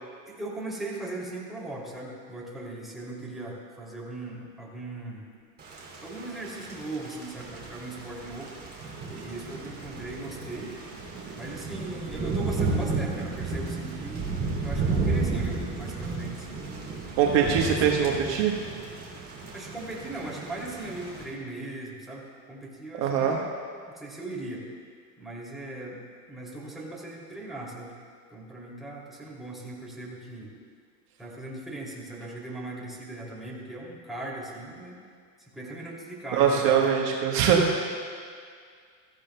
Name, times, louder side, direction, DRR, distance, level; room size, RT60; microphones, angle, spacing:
voice 1, 0.3-5.3 6.0-8.6 9.1-10.8 11.3-16.6 17.4-18.2 19.5-23.5 23.9-24.7 25.2-27.9 28.3-30.5 31.2-35.0 35.4-36.8, right 2 dB, ahead, -5 dB, 2.8 m, -39 dB
Thunder / Rain, 5.6-21.2, right 3 dB, 20° right, 2.9 m, -33 dB
voice 2, 17.2-18.5 23.0-23.4 36.3-37.8, right 7 dB, 55° right, 0 dB, 1.4 m, -22 dB
16.5 x 14.5 x 2.3 m, 2.1 s
hypercardioid pair, 105°, 49 cm